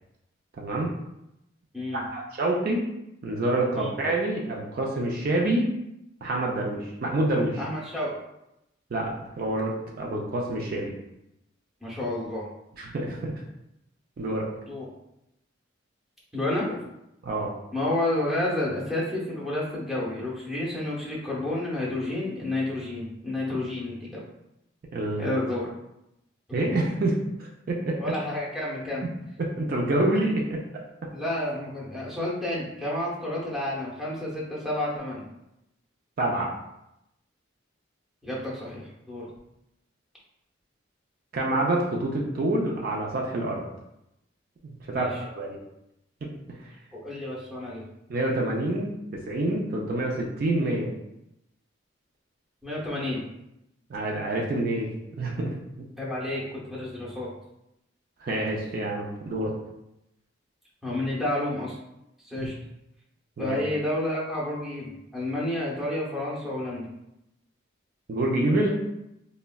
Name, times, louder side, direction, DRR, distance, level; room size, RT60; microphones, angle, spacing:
voice 1, 0.6-0.9 1.9-2.8 3.2-5.6 6.2-7.6 8.9-10.9 12.8-13.3 14.2-14.5 17.2-17.5 24.9-25.4 26.5-27.9 29.4-30.6 36.2-36.5 41.3-43.6 44.6-45.1 45.4-45.6 46.2-46.3 48.1-50.9 53.9-54.9 55.2-55.5 58.2-59.5 62.4-62.5 63.4-63.6 68.1-68.7, right 1 dB, 50° right, -2 dB, 0.4 m, -27 dB
voice 2, 7.6-8.1 11.8-12.5 14.7-14.9 16.3-16.8 17.7-24.2 25.2-25.7 26.5-26.8 28.0-29.0 31.1-35.2 38.2-39.3 44.9-45.2 46.9-47.8 52.6-53.2 56.0-57.3 60.8-61.7 62.2-62.5 63.4-66.9, left 1 dB, ahead, -7 dB, 0.7 m, -30 dB
3.5 x 2.1 x 2.2 m, 0.85 s
head